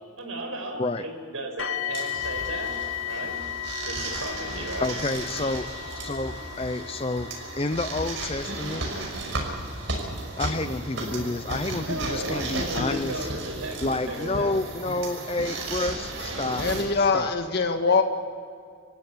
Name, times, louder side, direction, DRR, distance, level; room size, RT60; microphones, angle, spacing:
voice 1, 0.2-2.8 3.1-3.4 3.9-4.9 11.8-14.5, right 1 dB, 90° right, 3 dB, 5.4 m, -35 dB
sound 1, 1.6-14.5 15.3-15.4 16.0-16.1, left 11 dB, 70° left, 1.1 m, -37 dB
sound 2, 1.9-16.8, right 2 dB, 60° right, 5.6 m, -34 dB
voice 2, 4.8-5.7 6.0-7.3 7.6-8.8 9.9-10.1 10.4-13.3 13.8-16.7 17.1-17.3, left 2 dB, 25° left, 10 dB, 0.6 m, -29 dB
voice 3, 16.6-18.0, left 4 dB, 50° left, 5 dB, 1.8 m, -23 dB
26.0 x 15.5 x 9.7 m, 2.3 s
head